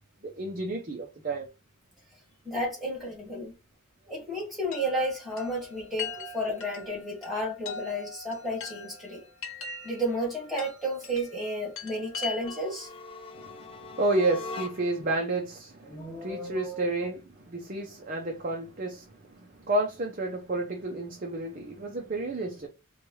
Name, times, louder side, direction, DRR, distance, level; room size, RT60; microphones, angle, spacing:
voice 1, 0.2-1.5 13.3-22.7, right 2 dB, 40° right, 0.6 m, -31 dB
voice 2, 2.5-3.5 4.1-9.2 9.8-12.9 15.9-17.1, equal, ahead, 1.9 m, -32 dB
Chime, 4.7-12.8, left 5 dB, 85° left, 1.0 m, -41 dB
sound 1, 12.3-15.1, left 4 dB, 25° left, 0.3 m, -41 dB
4.6 x 2.3 x 3.1 m
head